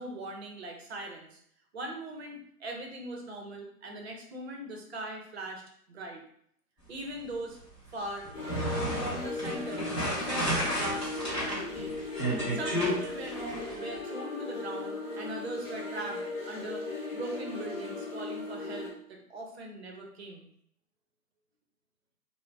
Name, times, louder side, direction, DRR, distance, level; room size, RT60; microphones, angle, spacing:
voice 1, 0.0-1.4 1.7-5.6 5.9-6.2 6.9-7.6 7.9-8.3 9.0-9.9 10.3-11.1 11.5-11.9 12.5-16.8 17.1-20.5, right 1 dB, 40° right, 2 dB, 0.5 m, -40 dB
sound 1, 8.2-13.7, equal, 20° left, 0.7 m, -32 dB
sound 2, 8.3-18.9, left 3 dB, 50° left, 1.0 m, -38 dB
2.4 x 2.0 x 3.1 m, 0.67 s
hypercardioid pair, 140°, 50 cm